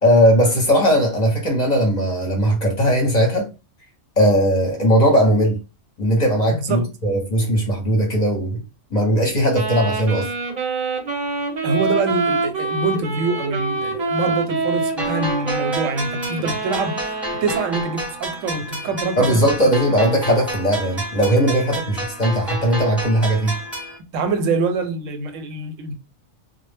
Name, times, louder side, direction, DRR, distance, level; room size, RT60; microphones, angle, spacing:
voice 1, 0.0-3.5 4.2-5.6 6.0-8.6 8.9-10.3 19.2-23.5, equal, 40° left, 0.7 m, -18 dB
voice 2, 6.5-6.9 11.6-17.1 17.4-19.5 24.1-25.9, right 3 dB, 85° right, 0.9 m, -25 dB
Wind instrument woodwind instrument, 9.5-18.0, right 3 dB, 45° right, 0.7 m, -26 dB
sound 1, 15.0-24.0, right 1 dB, ahead, 0.7 m, -30 dB
2.1 x 2.0 x 3.2 m
omnidirectional pair, 1.3 m